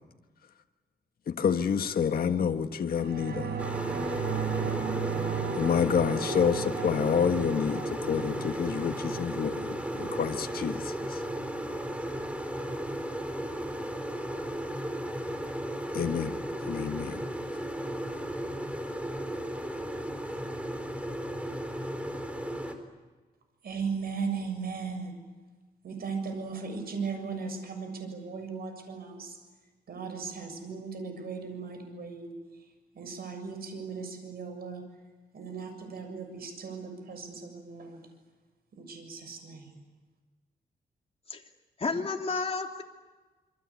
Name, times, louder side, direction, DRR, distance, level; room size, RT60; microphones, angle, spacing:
voice 1, 1.4-3.5 5.6-9.6 10.0-10.9 15.9-16.3 16.7-17.2, left 7 dB, 65° left, 1.6 m, -28 dB
sound 1, 3.0-12.0 12.3-12.4, right 6 dB, 85° right, 4.9 m, -36 dB
sound 2, 3.6-22.7, equal, 10° right, 4.0 m, -35 dB
voice 2, 23.6-25.2 25.8-29.4 29.9-35.0 35.3-38.1 38.7-39.9, right 5 dB, 65° right, 7.0 m, -37 dB
voice 3, 41.8-42.8, left 4 dB, 35° left, 3.1 m, -31 dB
27.0 x 25.0 x 8.5 m
cardioid pair, 100°, 17 cm